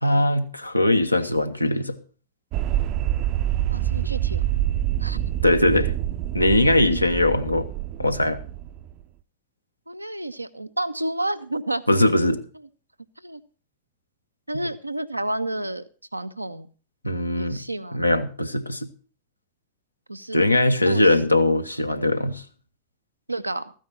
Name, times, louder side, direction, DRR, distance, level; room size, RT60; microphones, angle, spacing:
voice 1, 0.0-1.9 5.4-5.9 6.3-7.7 8.0-8.4 11.9-12.4 17.0-17.6 17.9-18.9 20.3-22.4, left 1 dB, 85° left, 1.2 m, -20 dB
sound 1, 2.5-8.9, right 12 dB, 45° right, 0.7 m, -26 dB
voice 2, 3.7-4.5 5.0-5.2 9.9-11.9 13.2-13.4 14.5-15.8 16.1-16.7 17.4-18.0 20.1-20.5 20.9-21.1 23.3-23.7, right 1 dB, 85° right, 0.8 m, -30 dB
14.5 x 9.3 x 5.7 m
figure-of-eight pair, 90°, 0 cm